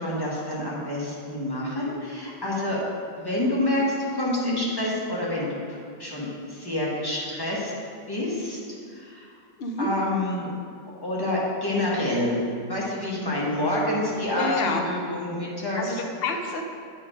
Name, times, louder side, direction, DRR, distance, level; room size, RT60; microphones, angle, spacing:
voice 1, 0.0-2.8 3.2-7.7 8.1-8.6 8.9-9.3 9.8-10.5 11.0-12.3 12.7-15.8, left 1 dB, 15° left, -6 dB, 1.3 m, -27 dB
voice 2, 14.3-14.9 15.8-16.6, left 3 dB, 55° left, 3 dB, 0.7 m, -28 dB
8.3 x 4.9 x 5.0 m, 2.2 s
omnidirectional pair, 1.9 m